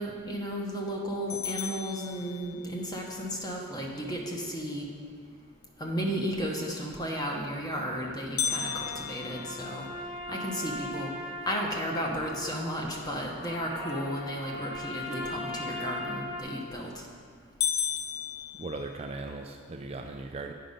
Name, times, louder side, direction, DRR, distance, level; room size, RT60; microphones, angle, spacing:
voice 1, 0.0-4.9 5.8-9.9 10.3-11.1 11.5-17.0, equal, 20° left, -1 dB, 1.0 m, -34 dB
sound 1, 1.3-2.9 8.4-10.5 11.0-11.1 11.6-11.7 12.4-12.7 16.3-16.7 17.1-17.2 17.6-19.3, left 8 dB, 80° left, 0.6 m, -34 dB
sound 2, 8.4-16.4, left 1 dB, 55° left, 1.5 m, -39 dB
voice 2, 18.6-20.5, right 3 dB, 30° right, 4 dB, 0.3 m, -38 dB
8.8 x 5.4 x 5.2 m, 2.1 s
head